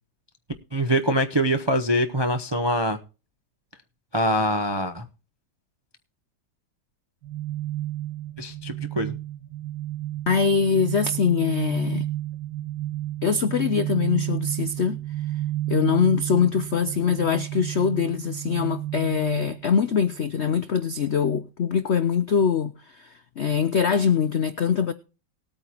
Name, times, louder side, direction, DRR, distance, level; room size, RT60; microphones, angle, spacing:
voice 1, 0.7-3.0 4.1-5.0 8.4-9.1, equal, 45° right, 0.3 m, -24 dB
sound 1, 7.2-20.3, right 14 dB, 60° right, 2.5 m, -31 dB
voice 2, 10.3-12.1 13.2-15.0 15.7-24.9, left 6 dB, 80° left, 0.6 m, -23 dB
19.5 x 8.9 x 2.9 m
omnidirectional pair, 2.0 m